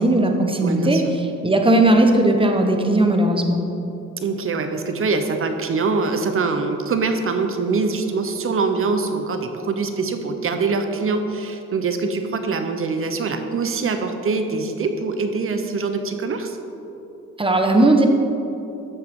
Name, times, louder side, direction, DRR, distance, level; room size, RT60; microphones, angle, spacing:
voice 1, 0.0-3.6 17.4-18.1, right 1 dB, 15° right, 3 dB, 1.1 m, -17 dB
voice 2, 0.6-1.0 4.2-16.6, right 4 dB, 45° right, 6 dB, 0.9 m, -24 dB
13.0 x 7.6 x 3.8 m, 3.0 s
cardioid pair, 90°, 30 cm